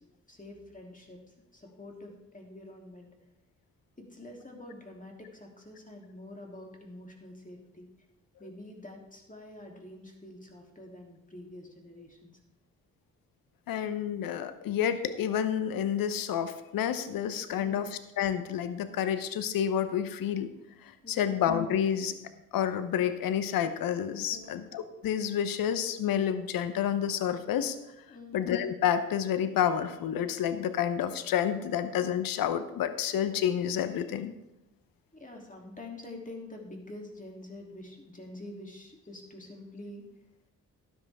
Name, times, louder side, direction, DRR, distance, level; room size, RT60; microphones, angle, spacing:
voice 1, 0.3-1.2 1.5-3.1 4.0-7.9 8.4-12.4 17.5-17.8 21.0-21.3 24.3-24.6 28.1-28.4 35.1-40.0, left 1 dB, 20° left, 1 dB, 3.0 m, -46 dB
voice 2, 13.7-20.5 20.8-22.1 22.5-27.8 28.3-34.3, left 9 dB, 75° left, 12 dB, 0.9 m, -29 dB
13.0 x 10.0 x 3.6 m, 0.92 s
hypercardioid pair, 40°, 35 cm